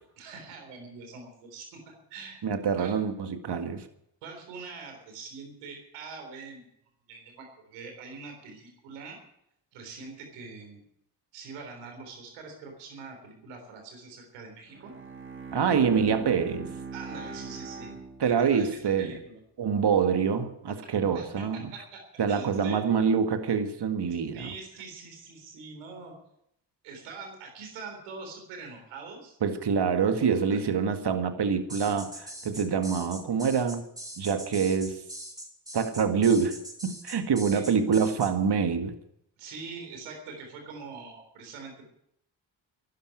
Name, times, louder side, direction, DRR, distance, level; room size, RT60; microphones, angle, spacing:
voice 1, 0.2-2.4 2.8-3.0 4.2-6.6 7.1-9.2 9.7-10.8 11.3-14.9 16.9-17.9 18.3-18.7 19.0-19.4 21.0-22.8 24.3-26.1 26.8-29.4 30.5-30.6 37.5-37.6 39.4-41.9, right 4 dB, 85° right, 3.8 m, -44 dB
voice 2, 2.4-3.9 15.5-16.7 18.2-19.2 19.6-21.7 22.2-24.5 29.4-33.8 34.2-35.0 35.7-38.9, right 6 dB, 55° right, 1.9 m, -26 dB
Bowed string instrument, 14.7-18.8, right 5 dB, 25° right, 2.3 m, -40 dB
sound 1, 31.7-38.3, right 1 dB, 10° right, 5.7 m, -42 dB
12.0 x 9.9 x 9.5 m
hypercardioid pair, 40°, 49 cm